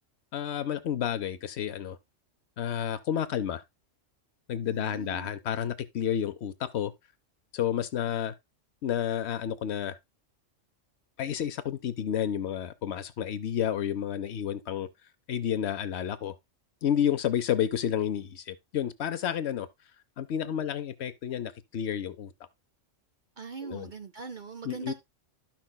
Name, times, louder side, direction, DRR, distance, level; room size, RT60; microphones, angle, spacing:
voice 1, 0.3-2.0 2.6-3.6 4.5-6.9 7.5-8.3 8.8-10.0 11.2-14.9 15.3-16.3 16.8-19.7 20.2-22.3 23.6-23.9 24.6-24.9, left 9 dB, 65° left, 0.8 m, -30 dB
voice 2, 4.6-5.3 23.4-24.9, right 5 dB, 55° right, 0.6 m, -41 dB
12.5 x 5.9 x 2.2 m
omnidirectional pair, 1.3 m